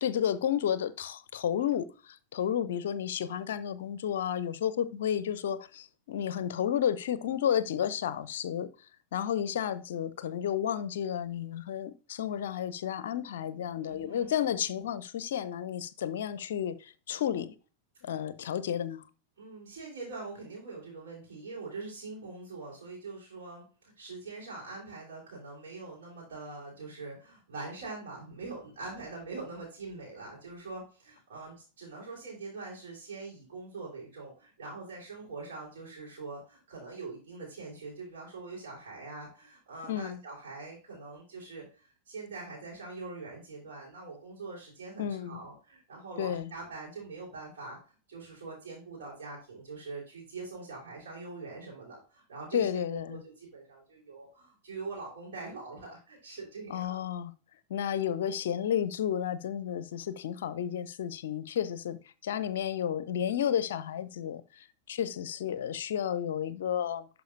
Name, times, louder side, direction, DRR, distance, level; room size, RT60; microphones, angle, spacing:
voice 1, 0.0-8.7 9.1-17.5 18.0-19.1 39.9-40.2 45.0-45.4 46.2-46.5 52.5-53.2 56.7-57.3 57.7-67.1, left 9 dB, 60° left, 0.5 m, -32 dB
voice 2, 13.8-14.3 18.1-18.2 19.4-57.0, right 3 dB, 60° right, 3.6 m, -43 dB
11.5 x 4.6 x 2.6 m
figure-of-eight pair, 90°, 0 cm